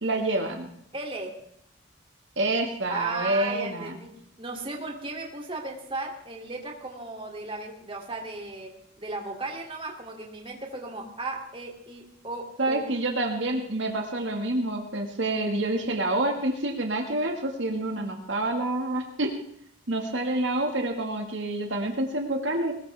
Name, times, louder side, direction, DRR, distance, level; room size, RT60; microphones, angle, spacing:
voice 1, 0.0-0.7 2.4-4.0 12.6-19.3 19.9-22.7, right 2 dB, 70° right, 2 dB, 1.9 m, -27 dB
voice 2, 0.9-1.3 2.9-4.1 4.4-8.7 9.0-12.8, right 2 dB, 30° right, 1 dB, 2.9 m, -36 dB
21.5 x 19.0 x 3.5 m, 0.70 s
head